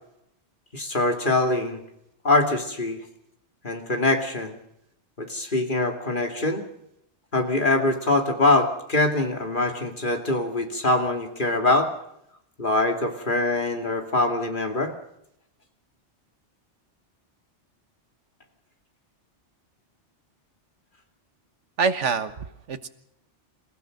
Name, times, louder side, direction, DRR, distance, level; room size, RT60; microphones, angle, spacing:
voice 1, 0.7-1.8 2.2-3.0 3.6-4.6 5.2-6.6 7.3-11.9 12.6-14.9, left 2 dB, 45° left, 3 dB, 2.7 m, -23 dB
voice 2, 21.8-22.9, right 5 dB, 90° right, 10 dB, 1.6 m, -26 dB
28.5 x 15.0 x 6.5 m, 0.79 s
omnidirectional pair, 1.2 m